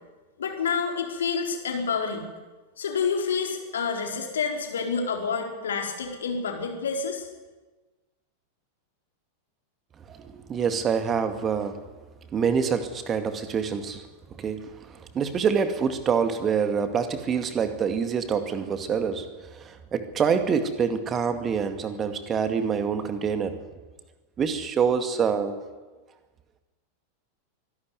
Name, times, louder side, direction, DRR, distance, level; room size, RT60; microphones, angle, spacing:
voice 1, 0.4-2.3 2.8-7.3, left 5 dB, 65° left, 2 dB, 4.1 m, -28 dB
voice 2, 10.1-11.8 12.3-14.0 14.4-23.6 24.4-25.6, right 6 dB, 25° right, 8 dB, 2.2 m, -26 dB
24.0 x 12.0 x 9.6 m, 1.3 s
figure-of-eight pair, 90°, 0 cm